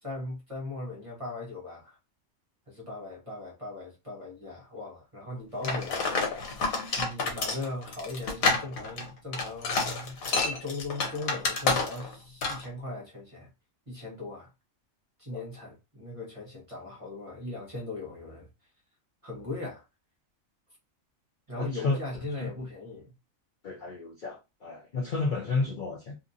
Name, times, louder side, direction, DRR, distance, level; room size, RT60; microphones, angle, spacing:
voice 1, 0.0-2.0 2.7-6.0 7.0-13.5 13.9-14.5 15.2-18.5 19.2-19.8 21.5-23.1, left 2 dB, 30° right, 0.7 m, -38 dB
sound 1, 5.6-12.1 12.4-12.7, left 3 dB, 80° left, 1.2 m, -29 dB
voice 2, 21.6-22.0 22.4-22.5 23.6-26.1, left 4 dB, 55° left, 0.5 m, -31 dB
2.8 x 2.5 x 2.5 m
omnidirectional pair, 1.5 m